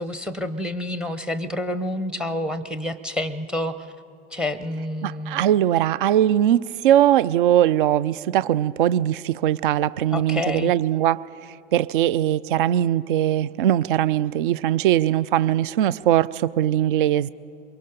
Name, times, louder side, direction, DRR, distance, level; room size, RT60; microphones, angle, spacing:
voice 1, 0.0-3.9 4.3-5.4 10.1-10.7, left 1 dB, 5° right, 0.7 m, -28 dB
voice 2, 5.0-11.2 11.7-17.3, right 11 dB, 60° right, 0.4 m, -20 dB
23.5 x 22.5 x 5.1 m
figure-of-eight pair, 80°, 30 cm